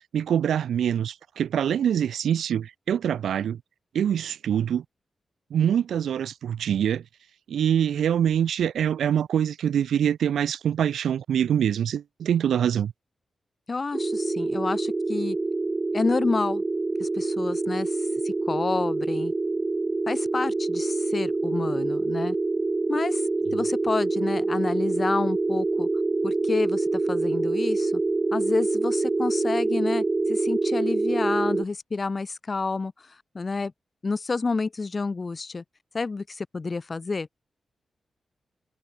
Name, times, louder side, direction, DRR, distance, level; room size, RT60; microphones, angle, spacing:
voice 1, 0.1-3.6 3.9-4.8 5.5-7.0 7.5-12.9, right 9 dB, 80° right, 1.4 m, -24 dB
voice 2, 13.7-15.4 15.9-16.6 17.0-19.3 20.1-22.4 22.9-23.2 23.5-25.9 26.2-28.0 28.3-33.7 34.0-35.6 35.9-37.3, left 4 dB, 45° left, 4.6 m, -29 dB
sound 1, 13.9-31.6, right 3 dB, 35° right, 8.0 m, -26 dB
supercardioid pair, 40°, 0 cm